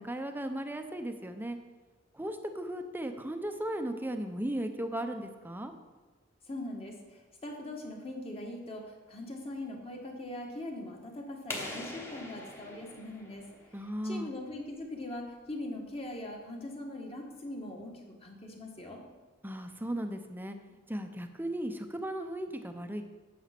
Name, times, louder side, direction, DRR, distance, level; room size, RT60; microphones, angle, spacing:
voice 1, 0.0-1.6 2.1-5.7 13.7-14.3 19.4-20.6 20.9-23.0, right 1 dB, 10° right, 7 dB, 0.7 m, -36 dB
voice 2, 6.5-13.5 14.0-19.0, left 1 dB, 30° left, 1 dB, 1.6 m, -41 dB
sound 1, 11.5-14.1, left 1 dB, 15° left, 1.2 m, -43 dB
9.1 x 7.2 x 5.9 m, 1.3 s
head